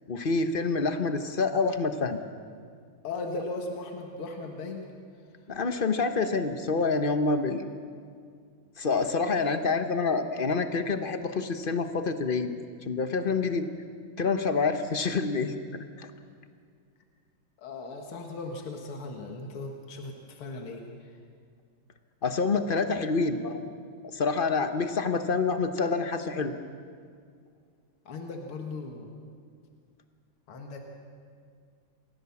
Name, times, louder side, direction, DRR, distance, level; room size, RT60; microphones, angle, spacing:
voice 1, 0.1-2.2 5.5-7.6 8.8-12.5 12.9-13.7 14.2-15.5 16.0-16.1 22.2-23.6 24.1-26.5, left 4 dB, 40° left, 8 dB, 0.7 m, -27 dB
voice 2, 3.0-4.9 17.6-21.2 28.1-29.1 30.5-30.8, left 3 dB, 80° left, 2 dB, 2.5 m, -37 dB
28.5 x 15.5 x 7.2 m, 2.1 s
omnidirectional pair, 2.4 m